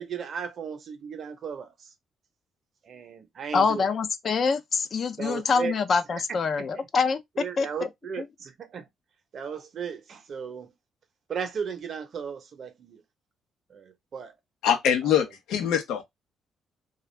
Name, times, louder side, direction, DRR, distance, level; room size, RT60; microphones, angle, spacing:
voice 1, 0.0-1.9 2.8-3.9 5.2-5.7 6.3-6.9 7.4-8.9 9.3-10.7 11.3-13.0 13.7-14.3 15.0-15.3, right 6 dB, 55° right, 0.7 m, -36 dB
voice 2, 3.5-7.2 7.6-7.7, left 5 dB, 50° left, 0.4 m, -25 dB
voice 3, 14.6-16.0, left 9 dB, 90° left, 0.7 m, -24 dB
2.4 x 2.3 x 3.1 m
cardioid pair, 90°, 0 cm